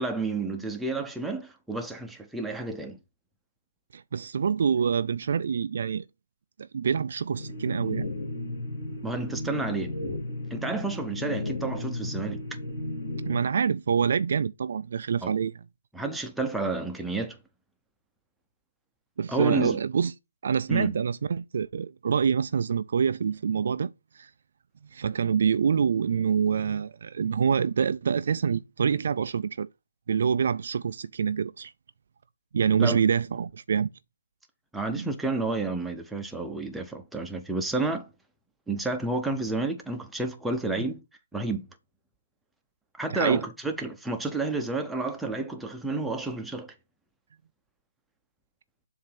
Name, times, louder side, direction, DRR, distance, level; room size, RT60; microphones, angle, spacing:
voice 1, 0.0-3.0 9.0-9.9 10.5-12.4 15.2-15.3 15.9-17.4 19.3-19.8 20.7-20.9 32.8-33.0 34.7-38.1 38.7-41.0 41.3-41.7 42.9-46.7, right 3 dB, 5° right, 0.7 m, -30 dB
voice 2, 3.9-6.0 6.7-8.1 13.2-15.5 19.2-20.1 20.4-23.9 24.2-24.3 24.9-29.7 30.1-31.7 32.5-33.9 34.9-35.1 43.1-43.5, right 6 dB, 50° right, 0.3 m, -26 dB
sound 1, 7.3-13.4, left 2 dB, 40° left, 1.9 m, -34 dB
7.3 x 2.7 x 5.8 m
figure-of-eight pair, 150°, 0 cm